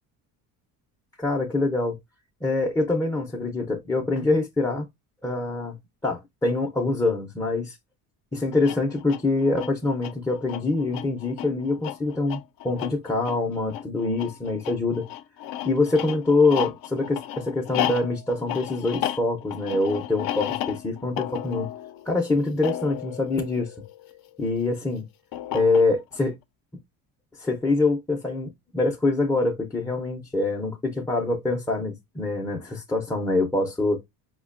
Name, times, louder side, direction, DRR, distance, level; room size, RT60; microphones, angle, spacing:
voice 1, 1.2-2.0 2.4-4.9 5.2-5.8 6.0-7.8 8.3-15.1 15.6-21.7 22.1-23.7 24.4-25.0 25.5-26.4 27.4-34.0, left 3 dB, 10° left, 0.5 m, -25 dB
sound 1, 8.5-24.3 25.3-26.2, left 12 dB, 65° left, 0.5 m, -34 dB
4.8 x 2.2 x 2.3 m
cardioid pair, 110°, 39 cm